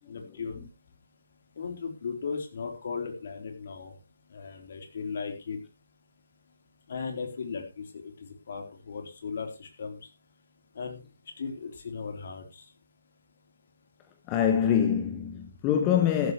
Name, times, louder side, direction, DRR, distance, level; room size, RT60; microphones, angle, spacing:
voice 1, 0.1-0.6 1.6-4.0 4.3-5.6 6.9-10.1 10.8-11.0 11.4-12.7, left 5 dB, 55° left, 3.7 m, -37 dB
voice 2, 14.3-16.3, left 9 dB, 20° left, 1.4 m, -25 dB
14.5 x 12.5 x 3.1 m
figure-of-eight pair, 145°, 0 cm